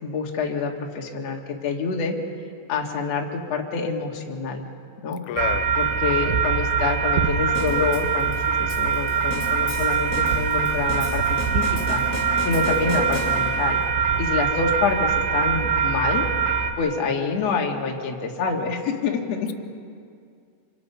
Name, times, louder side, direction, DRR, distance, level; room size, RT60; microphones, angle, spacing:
voice 1, 0.0-2.2 2.7-4.6 5.0-5.2 5.8-12.0 12.4-13.8 14.2-16.3 16.8-19.5, left 4 dB, 50° left, 0 dB, 2.0 m, -27 dB
voice 2, 5.3-5.7 6.2-6.4, left 11 dB, 90° left, 11 dB, 3.3 m, -29 dB
sound 1, 5.4-16.7, right 6 dB, 80° right, 2.0 m, -23 dB
sound 2, 7.5-13.8, left 1 dB, 25° left, 3.3 m, -35 dB
27.5 x 25.0 x 5.8 m, 2.3 s
omnidirectional pair, 5.6 m